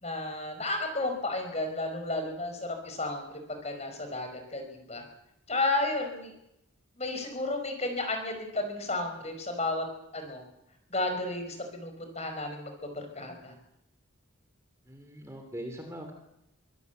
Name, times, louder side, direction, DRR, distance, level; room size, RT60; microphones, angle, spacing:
voice 1, 0.0-5.0 5.5-6.3 7.0-9.8 10.1-10.4 10.9-13.6, left 2 dB, 30° left, 5 dB, 5.2 m, -33 dB
voice 2, 14.9-16.1, equal, 15° right, 4 dB, 3.3 m, -41 dB
25.0 x 16.5 x 8.3 m, 0.82 s
head